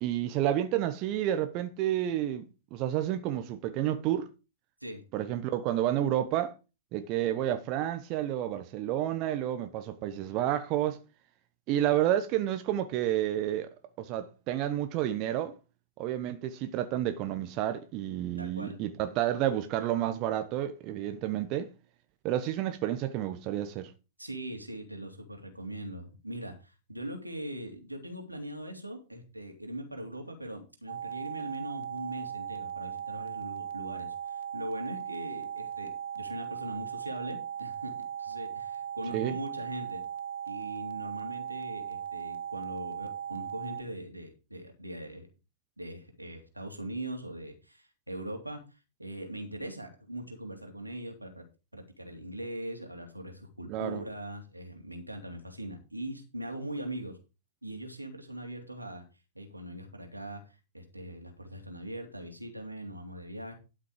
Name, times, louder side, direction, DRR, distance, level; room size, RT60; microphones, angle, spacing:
voice 1, 0.0-2.4 2.7-4.3 5.1-6.5 6.9-11.0 11.7-13.7 14.0-15.5 16.0-21.7 22.2-23.9 39.1-39.3 53.7-54.0, right 12 dB, 35° right, 1.1 m, -30 dB
voice 2, 18.4-18.8 24.2-37.9 38.2-40.0 40.5-45.3 45.8-51.4 51.7-57.2 57.6-59.0 59.3-63.5, right 1 dB, 90° right, 3.0 m, -41 dB
sound 1, 30.9-43.8, right 9 dB, 55° right, 0.8 m, -38 dB
12.0 x 6.3 x 5.0 m
figure-of-eight pair, 105°, 0 cm